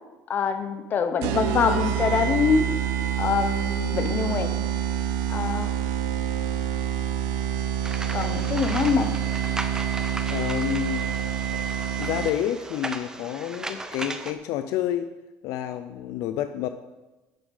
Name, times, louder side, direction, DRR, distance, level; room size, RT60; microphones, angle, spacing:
voice 1, 0.3-2.7 3.2-4.5 5.3-5.7 8.1-9.1, left 6 dB, 35° left, 1.0 m, -24 dB
sound 1, 1.2-12.6, right 10 dB, 80° right, 0.9 m, -27 dB
sound 2, 7.8-14.3, right 2 dB, 10° right, 0.8 m, -37 dB
voice 2, 10.3-11.1 12.0-15.1 15.4-16.7, left 11 dB, 65° left, 0.5 m, -29 dB
11.0 x 7.1 x 5.5 m
cardioid pair, 135°, 5 cm